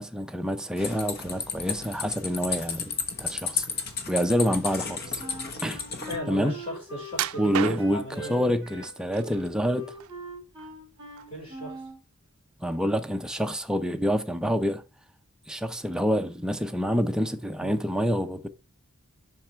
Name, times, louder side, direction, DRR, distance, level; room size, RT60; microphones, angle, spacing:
voice 1, 0.0-2.9 3.2-3.7 4.1-5.2 5.6-5.8 6.3-6.5 7.4-9.9 12.6-14.8 15.5-18.5, equal, 5° right, 0.5 m, -27 dB
sound 1, 0.8-6.2, left 5 dB, 45° left, 1.1 m, -33 dB
Wind instrument woodwind instrument, 5.2-12.0, equal, 20° right, 2.6 m, -42 dB
voice 2, 6.1-8.4 11.3-11.8 17.6-17.8, equal, 25° left, 4.5 m, -37 dB
sound 2, 7.1-8.2 8.8-9.5 9.9-10.8 11.2-11.4 11.9-12.0, right 10 dB, 70° right, 0.4 m, -32 dB
7.5 x 5.9 x 3.4 m
head